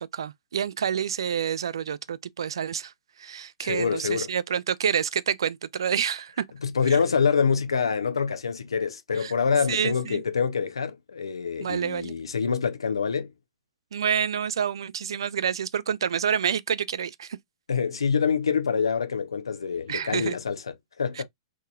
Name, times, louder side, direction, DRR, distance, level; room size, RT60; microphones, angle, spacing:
voice 1, 0.0-2.9 3.2-6.3 6.9-7.0 9.2-9.3 9.7-10.2 11.6-12.1 13.9-17.4 19.9-20.3 21.2-21.3, right 8 dB, 65° right, 0.4 m, -28 dB
voice 2, 3.6-4.3 6.6-13.3 17.7-21.2, left 6 dB, 75° left, 0.7 m, -26 dB
3.7 x 3.0 x 2.3 m
figure-of-eight pair, 115°, 3 cm